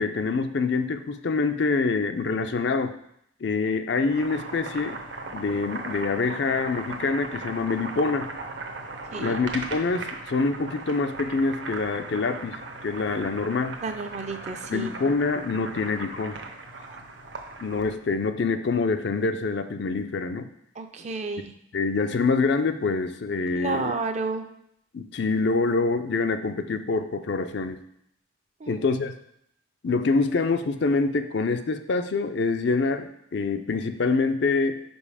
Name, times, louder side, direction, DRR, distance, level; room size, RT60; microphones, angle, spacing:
voice 1, 0.0-2.9 3.4-5.0 5.3-8.3 9.2-13.8 14.7-16.4 17.6-20.5 21.4-21.5 21.7-24.0 24.9-27.8 28.7-29.1 29.8-34.8, left 4 dB, 55° left, 8 dB, 0.4 m, -25 dB
Boiling, 3.9-18.0, right 3 dB, 60° right, 0.8 m, -38 dB
voice 2, 13.8-14.9 16.8-16.9 20.8-21.5 23.6-24.5 28.6-28.8, right 3 dB, 35° right, 7 dB, 0.4 m, -31 dB
5.3 x 5.1 x 4.9 m, 0.74 s
head